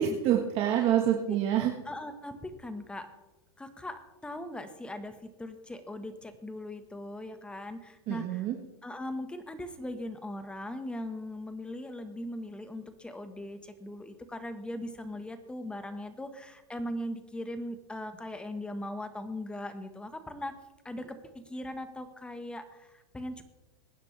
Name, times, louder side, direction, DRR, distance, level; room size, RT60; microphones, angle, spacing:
voice 1, 0.0-1.7 8.1-8.6, right 10 dB, 40° right, 2 dB, 1.5 m, -26 dB
voice 2, 1.8-3.1 3.6-8.4 8.8-20.6 20.8-23.4, left 1 dB, 5° left, 8 dB, 1.5 m, -39 dB
22.5 x 9.8 x 3.4 m, 1.1 s
hypercardioid pair, 125°, 14 cm